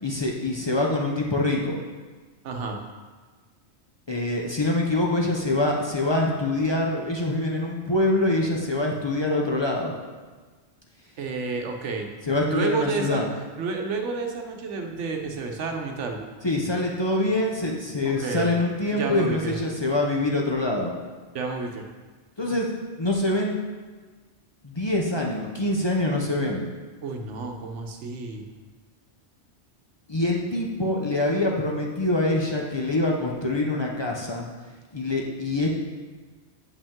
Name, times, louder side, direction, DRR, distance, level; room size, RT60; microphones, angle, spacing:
voice 1, 0.0-1.8 4.1-9.9 12.3-13.3 16.4-20.9 22.4-22.7 23.0-23.6 24.6-26.7 30.1-34.5 34.9-35.7, left 2 dB, 30° left, -1 dB, 0.5 m, -25 dB
voice 2, 2.4-2.8 11.2-12.1 12.5-13.3 13.6-16.2 18.0-18.6 18.9-19.6 21.3-21.9 27.0-28.4, right 4 dB, 90° right, 3 dB, 1.1 m, -30 dB
6.8 x 5.2 x 3.6 m, 1.4 s
omnidirectional pair, 1.2 m